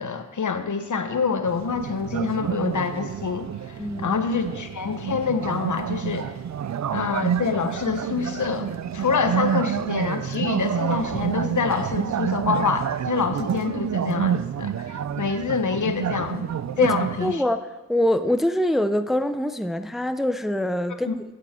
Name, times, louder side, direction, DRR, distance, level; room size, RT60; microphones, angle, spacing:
voice 1, 0.0-6.3 6.9-16.5 16.8-17.4 21.1-21.2, left 5 dB, 70° left, 8 dB, 1.1 m, -26 dB
sound 1, 1.5-17.3, right 9 dB, 60° right, 0.5 m, -28 dB
voice 2, 3.8-4.2 16.8-16.9 17.2-17.6 17.9-21.2, left 1 dB, ahead, 10 dB, 0.6 m, -24 dB
14.5 x 8.8 x 4.4 m, 1.1 s
cardioid pair, 65°, 32 cm